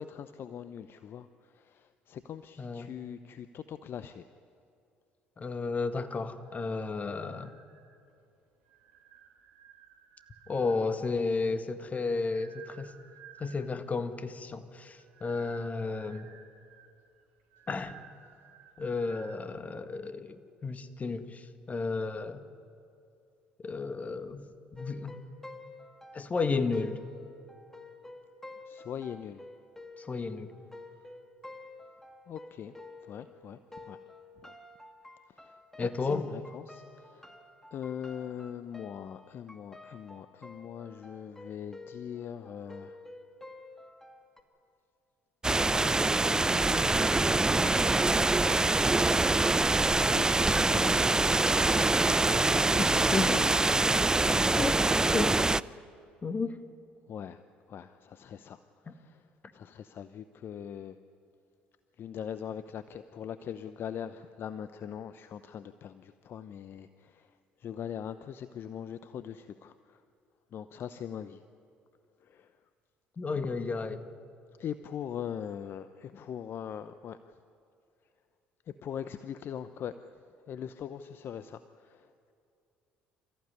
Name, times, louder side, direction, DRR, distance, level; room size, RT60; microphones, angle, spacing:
voice 1, 0.0-4.2 28.6-29.4 31.0-31.1 32.3-32.7 33.0-34.0 34.4-34.5 35.3-37.4 37.7-43.0 45.6-48.0 50.1-51.2 52.2-53.0 57.1-57.4 57.7-61.0 62.0-70.0 70.5-71.4 72.2-72.6 73.4-73.5 74.6-77.4 78.7-82.3, left 8 dB, 50° left, 12 dB, 0.8 m, -42 dB
voice 2, 2.6-2.9 5.4-7.5 10.5-12.9 13.4-16.3 17.7-18.0 18.8-22.4 23.6-24.4 24.7-25.2 26.1-27.0 30.0-30.5 35.8-36.3 53.1-53.4 54.6-54.8 55.1-55.4 56.2-56.6 58.9-59.0 73.2-74.1, left 4 dB, 30° left, 9 dB, 1.8 m, -32 dB
sound 1, 6.4-8.2 8.6-11.1 11.8-13.9 14.9-19.4, right 8 dB, 75° right, 3.3 m, -56 dB
sound 2, 24.8-33.4 33.7-44.4, left 2 dB, 10° left, 2.6 m, -50 dB
sound 3, 45.4-55.6, right 2 dB, 15° right, 0.5 m, -25 dB
27.5 x 14.5 x 9.7 m, 2.5 s
hypercardioid pair, 60°, 5 cm